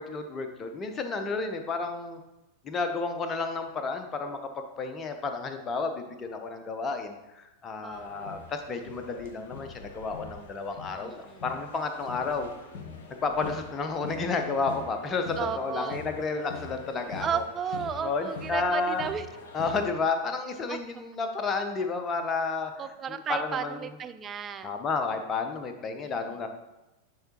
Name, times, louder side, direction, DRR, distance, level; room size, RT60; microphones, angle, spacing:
voice 1, 0.0-2.2 2.6-12.5 13.2-17.4 18.0-19.1 19.5-24.0 24.6-26.5, left 4 dB, 25° left, 6 dB, 0.7 m, -31 dB
voice 2, 7.8-8.4 11.0-11.4 15.4-16.0 17.2-19.3 20.7-20.8 22.8-24.7 26.0-26.1, right 7 dB, 25° right, 9 dB, 0.4 m, -34 dB
sound 1, 7.9-19.9, left 4 dB, 55° left, 0.8 m, -43 dB
10.0 x 3.4 x 2.9 m, 0.97 s
figure-of-eight pair, 90°, 0 cm